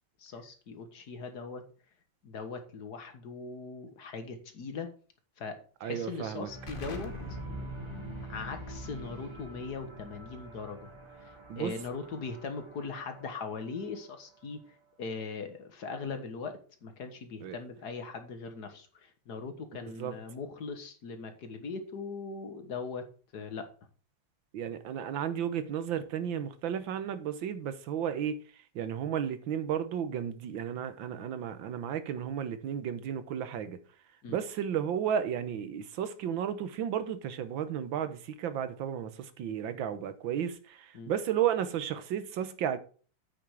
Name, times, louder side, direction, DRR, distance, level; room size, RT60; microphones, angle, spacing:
voice 1, 0.2-1.6 2.2-4.9 5.4-7.4 8.3-10.9 11.2-23.0 23.3-23.7 34.2-34.4 40.9-41.1, left 4 dB, 60° left, 1.9 m, -40 dB
voice 2, 5.8-6.5 11.5-11.7 17.4-17.6 20.0-20.1 24.5-28.4 28.7-33.8 34.3-42.8, right 9 dB, 85° right, 1.7 m, -33 dB
sound 1, 6.5-14.7, right 1 dB, 15° right, 1.4 m, -46 dB
Explosion, 6.7-12.1, equal, 30° left, 1.3 m, -45 dB
8.7 x 6.5 x 4.9 m
omnidirectional pair, 2.0 m